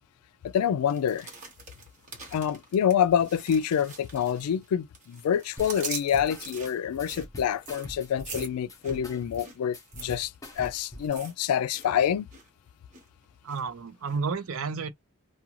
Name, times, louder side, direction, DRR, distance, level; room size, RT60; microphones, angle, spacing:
voice 1, 0.4-1.3 2.3-12.3, left 8 dB, 90° left, 0.3 m, -27 dB
sound 1, 0.9-4.7 4.9-11.9 12.1-12.5 12.9-13.6 14.1-14.2, right 4 dB, 35° right, 1.1 m, -43 dB
sound 2, 5.6-11.1, left 1 dB, 15° left, 0.7 m, -44 dB
voice 2, 13.4-14.9, right 5 dB, 65° right, 0.5 m, -31 dB
2.4 x 2.2 x 2.9 m
head